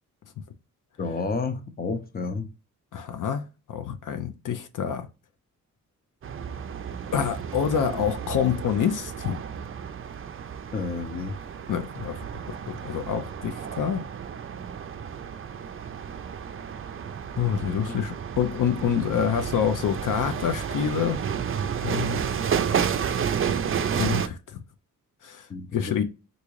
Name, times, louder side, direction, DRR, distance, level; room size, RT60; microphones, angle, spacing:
voice 1, 1.0-2.5 10.7-11.4 17.9-18.0 25.5-26.0, left 4 dB, 30° left, 0.6 m, -31 dB
voice 2, 2.9-5.1 7.1-9.4 11.7-12.2 12.7-14.0 17.4-21.2 21.8-22.2 24.0-24.6 25.2-25.5 25.7-26.0, left 8 dB, 70° left, 0.5 m, -27 dB
sound 1, 6.2-24.3, right 7 dB, 40° right, 0.4 m, -31 dB
3.6 x 2.6 x 3.0 m
cardioid pair, 95°, 33 cm